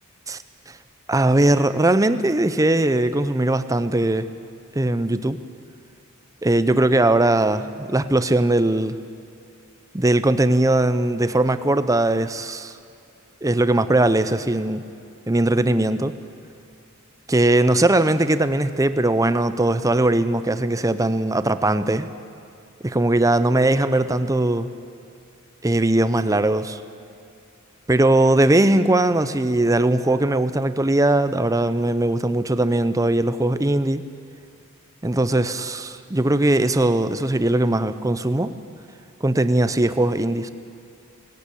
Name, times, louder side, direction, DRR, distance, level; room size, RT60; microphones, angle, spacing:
voice 1, 1.1-4.3 4.7-5.4 6.4-9.0 9.9-12.7 13.4-14.8 15.3-16.1 17.3-22.1 22.8-24.7 25.6-26.8 27.9-34.0 35.0-38.5 39.2-40.5, right 1 dB, 15° right, 12 dB, 0.7 m, -20 dB
18.5 x 18.0 x 8.5 m, 2.6 s
head